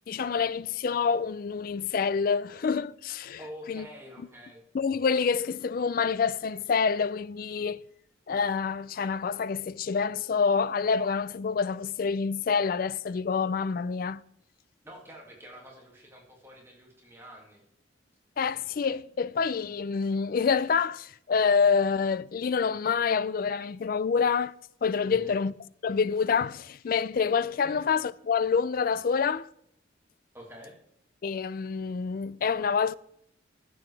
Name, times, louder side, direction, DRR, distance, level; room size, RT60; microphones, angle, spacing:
voice 1, 0.1-3.4 3.7-3.8 4.7-7.8 8.3-14.2 18.4-24.5 24.8-25.5 25.8-29.5 31.2-33.0, left 5 dB, 45° left, 0.3 m, -27 dB
voice 2, 3.4-4.6 14.8-17.6 25.0-25.4 27.6-27.8 30.3-30.8, equal, 15° right, 2.2 m, -47 dB
14.5 x 7.8 x 3.4 m
head